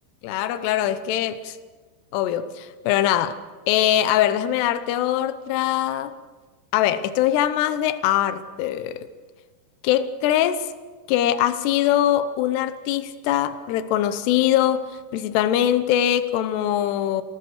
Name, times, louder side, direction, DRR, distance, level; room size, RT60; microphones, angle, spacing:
voice 1, 0.2-1.6 2.1-3.4 3.7-6.1 6.7-9.1 9.8-10.7 11.1-17.2, left 11 dB, 80° left, 3.0 m, -22 dB
27.0 x 19.5 x 6.4 m
omnidirectional pair, 4.9 m